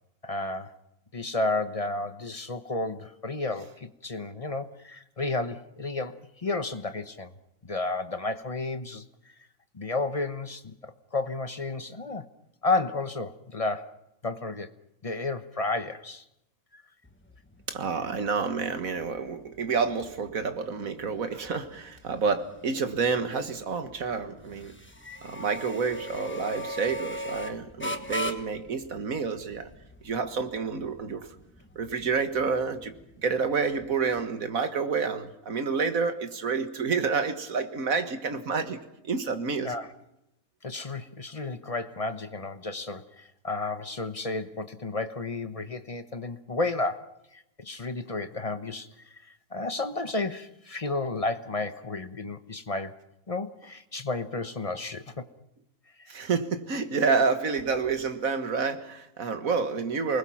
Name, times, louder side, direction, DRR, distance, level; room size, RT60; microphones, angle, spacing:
voice 1, 0.2-0.7 1.1-7.3 7.6-9.0 9.7-12.2 12.6-13.9 14.2-14.7 15.0-16.2 16.7-16.8 39.6-39.9 40.6-53.0 53.3-55.3 56.0-56.1, left 3 dB, 30° left, 10 dB, 0.9 m, -32 dB
sound 1, 17.0-34.2, left 1 dB, 10° left, 1.2 m, -41 dB
voice 2, 17.7-24.7 25.2-29.7 30.0-31.3 31.8-32.9 33.2-39.7 56.1-60.2, right 5 dB, 65° right, 8 dB, 1.9 m, -29 dB
28.5 x 20.5 x 5.8 m, 0.86 s
omnidirectional pair, 1.5 m